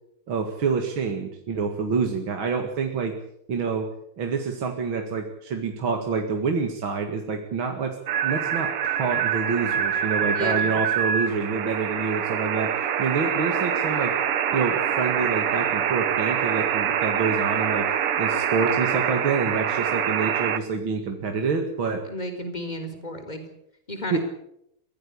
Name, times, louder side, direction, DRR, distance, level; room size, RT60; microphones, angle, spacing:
voice 1, 0.3-3.1 3.5-3.9 4.2-8.0 8.2-12.7 13.0-14.1 14.5-17.9 18.2-22.0 24.1-24.2, right 5 dB, 65° right, 4 dB, 2.7 m, -27 dB
sound 1, 8.1-20.6, right 8 dB, 85° right, 2.4 m, -25 dB
voice 2, 10.3-10.7 22.0-23.4 23.9-24.2, left 1 dB, 20° left, 7 dB, 4.3 m, -32 dB
23.0 x 17.0 x 8.6 m, 0.77 s
omnidirectional pair, 2.4 m